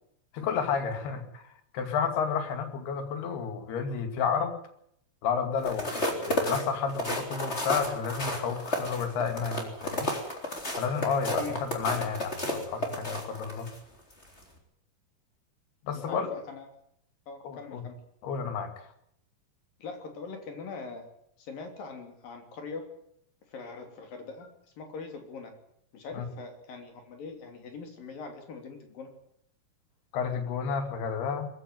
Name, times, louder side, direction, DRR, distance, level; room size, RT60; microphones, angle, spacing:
voice 1, 0.3-4.6 5.2-10.1 10.8-13.7 15.8-16.3 17.4-17.8 18.2-18.9 26.1-26.3 30.1-31.5, left 6 dB, 85° left, 8 dB, 4.3 m, -31 dB
sound 1, 5.6-13.8 14.2-14.4, left 1 dB, 15° left, 3.6 m, -32 dB
voice 2, 16.1-16.7 17.3-18.0 19.8-21.1 21.4-22.8 23.5-24.5 24.8-25.5 25.9-29.1, left 4 dB, 65° left, 5 dB, 4.9 m, -42 dB
21.0 x 15.0 x 9.5 m, 0.72 s
omnidirectional pair, 4.5 m